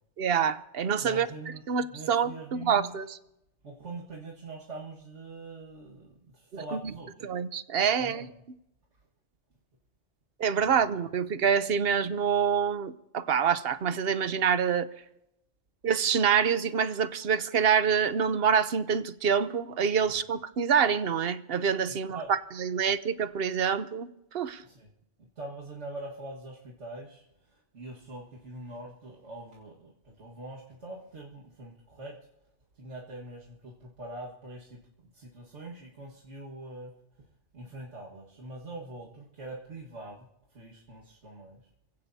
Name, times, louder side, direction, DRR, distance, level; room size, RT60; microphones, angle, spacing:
voice 1, 0.2-1.3 1.7-3.1 6.7-6.8 7.2-8.3 10.4-14.9 15.8-24.6, right 7 dB, 60° right, 1.0 m, -26 dB
voice 2, 1.0-1.6 1.9-3.0 3.6-7.3 8.0-8.4 10.6-10.8 20.1-20.2 21.9-22.3 24.6-24.9 25.4-27.2 27.5-32.1 32.8-34.8 35.1-36.9 37.5-40.2 40.5-41.6, right 2 dB, 90° right, 2.1 m, -43 dB
28.5 x 16.5 x 2.8 m
omnidirectional pair, 1.2 m